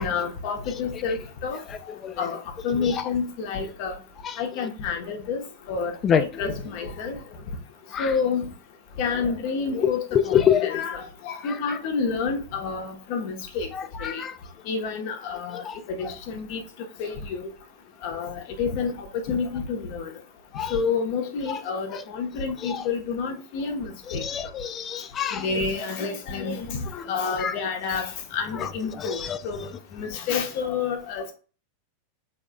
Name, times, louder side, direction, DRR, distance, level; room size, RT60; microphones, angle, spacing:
voice 1, 0.0-1.6 2.2-3.9 4.4-5.4 5.7-7.2 8.0-8.5 9.0-13.7 14.0-14.2 14.7-15.6 16.0-16.6 17.0-17.5 18.0-20.1 20.7-24.2 25.3-26.8 27.1-29.2 29.4-29.7 29.9-31.3, left 5 dB, 45° left, 1.1 m, -29 dB
voice 2, 1.7-2.3 2.8-3.1 4.2-4.4 6.0-6.2 7.9-8.1 9.8-10.7 11.4-11.8 13.7-14.4 15.5-15.8 20.5-20.7 21.5-21.6 21.9-22.0 22.6-22.9 24.1-25.5 26.9-27.1 27.4-27.5 28.5-29.4, left 8 dB, 25° left, 0.4 m, -27 dB
5.4 x 3.6 x 2.2 m
figure-of-eight pair, 90°, 0 cm